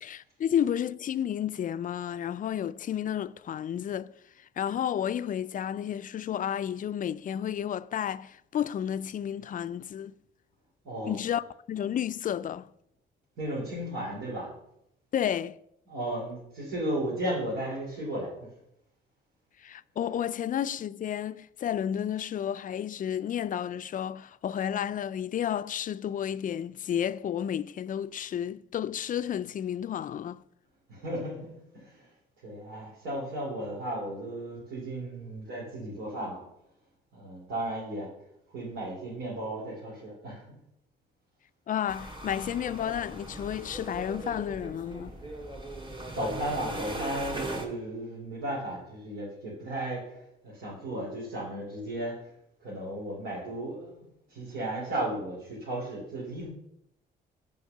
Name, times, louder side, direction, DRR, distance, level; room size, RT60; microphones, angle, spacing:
voice 1, 0.0-4.1 4.6-10.1 11.0-12.7 15.1-15.6 19.6-30.4 41.7-45.2, left 9 dB, 45° left, 0.4 m, -31 dB
voice 2, 10.8-11.1 13.4-14.5 15.9-18.3 30.9-32.1 32.4-36.4 37.1-38.1 38.5-40.6 46.1-50.2 50.4-52.2 52.6-54.0 54.3-56.5, right 1 dB, 90° right, 2.9 m, -35 dB
sound 1, 41.9-47.7, right 1 dB, 25° right, 1.8 m, -39 dB
6.4 x 5.3 x 6.6 m
cardioid pair, 90°, 20 cm